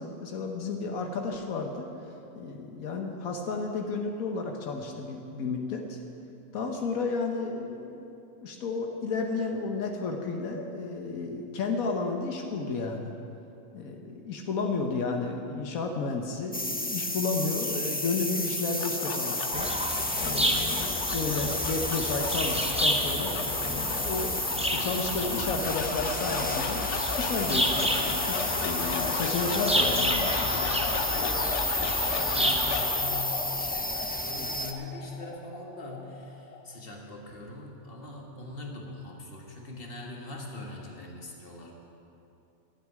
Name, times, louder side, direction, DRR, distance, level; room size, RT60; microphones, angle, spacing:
voice 1, 0.0-1.9 2.3-6.0 6.5-8.0 8.4-13.1 13.7-19.7 20.2-26.8 27.2-30.7, left 4 dB, 85° left, 3 dB, 1.4 m, -32 dB
sound 1, 16.5-34.7, left 1 dB, 15° left, 0.3 m, -31 dB
sound 2, 18.5-36.8, left 5 dB, 60° left, 1.1 m, -35 dB
sound 3, 19.5-32.8, right 1 dB, 5° right, 0.7 m, -31 dB
voice 2, 31.1-41.8, left 2 dB, 45° left, 0 dB, 1.9 m, -42 dB
12.0 x 8.2 x 9.6 m, 2.8 s
omnidirectional pair, 1.4 m